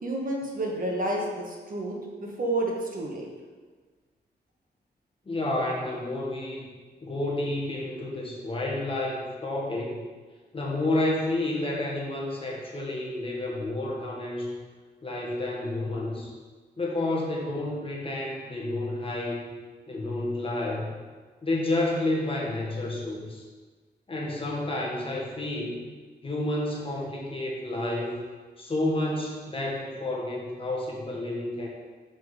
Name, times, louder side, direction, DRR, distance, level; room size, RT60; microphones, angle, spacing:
voice 1, 0.0-3.3, right 1 dB, 50° right, -1 dB, 1.2 m, -30 dB
voice 2, 5.2-6.7 7.0-10.0 10.5-14.5 15.0-16.3 16.8-19.4 19.9-20.9 21.4-23.4 24.1-25.8 26.2-28.2 28.6-31.7, left 2 dB, 30° left, -3 dB, 1.4 m, -30 dB
6.1 x 5.1 x 4.8 m, 1.4 s
wide cardioid pair, 130°, 18 cm